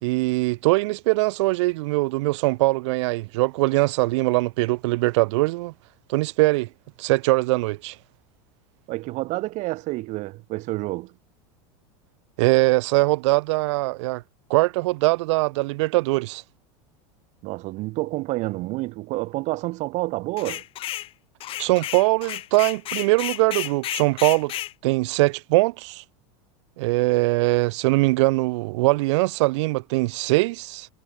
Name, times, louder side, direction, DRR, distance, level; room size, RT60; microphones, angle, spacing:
voice 1, 0.0-5.7 6.1-6.7 7.0-7.9 12.4-14.2 14.5-16.4 21.6-24.5 24.8-26.0 26.8-30.9, right 22 dB, 70° right, 4.7 m, -22 dB
voice 2, 8.9-11.1 17.4-20.6, right 20 dB, 50° right, 7.0 m, -29 dB
sound 1, 20.4-21.1 21.4-24.7, left 14 dB, 35° left, 1.3 m, -32 dB
supercardioid pair, 140°, 15 cm